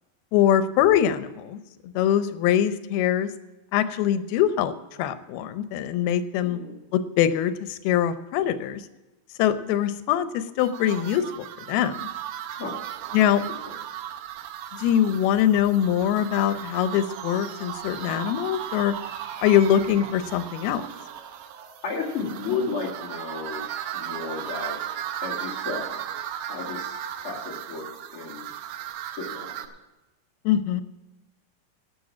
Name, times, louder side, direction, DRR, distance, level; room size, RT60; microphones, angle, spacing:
voice 1, 0.3-1.6 1.8-3.3 3.7-6.6 6.9-8.8 9.4-12.0 13.1-13.4 14.7-18.9 19.4-20.8 30.5-30.8, left 10 dB, 90° left, 12 dB, 2.7 m, -23 dB
voice 2, 6.4-6.8 12.6-12.8 21.8-23.6 23.9-24.8 25.2-26.0 26.4-27.0 27.2-27.9 28.1-28.5 29.1-29.6, left 4 dB, 45° left, -2 dB, 2.4 m, -33 dB
sound 1, 10.6-29.7, right 11 dB, 80° right, 2.5 m, -36 dB
sound 2, 16.6-28.9, right 3 dB, 45° right, 3.3 m, -47 dB
11.5 x 7.7 x 7.2 m, 1.1 s
omnidirectional pair, 4.3 m